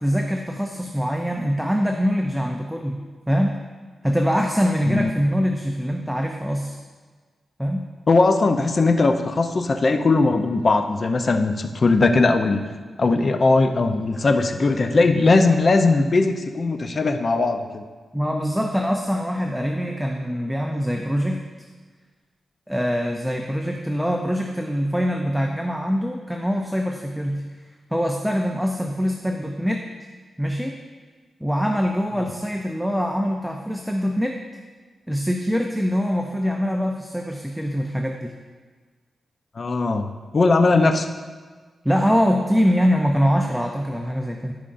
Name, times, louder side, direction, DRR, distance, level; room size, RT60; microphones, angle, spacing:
voice 1, 0.0-3.0 3.3-3.6 4.0-6.8 7.6-7.9 18.1-21.4 22.7-27.4 27.9-29.9 30.4-30.8 31.4-34.4 35.1-38.3 41.8-44.5, equal, ahead, 2 dB, 0.5 m, -23 dB
voice 2, 8.1-12.6 13.0-17.8 39.6-40.1 40.3-41.1, left 3 dB, 40° left, 6 dB, 0.6 m, -19 dB
13.5 x 5.2 x 2.6 m, 1.5 s
wide cardioid pair, 105°, 0 cm